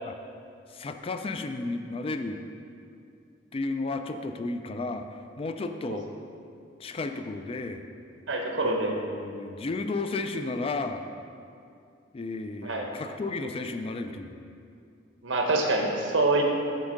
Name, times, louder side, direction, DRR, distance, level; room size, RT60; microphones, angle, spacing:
voice 1, 0.7-2.4 3.5-6.1 6.8-7.8 8.6-11.0 12.1-14.4, left 3 dB, 30° left, 7 dB, 0.3 m, -33 dB
voice 2, 8.3-9.0 12.6-12.9 15.2-16.4, right 2 dB, 90° right, 1 dB, 1.0 m, -25 dB
7.5 x 3.5 x 6.4 m, 2.5 s
head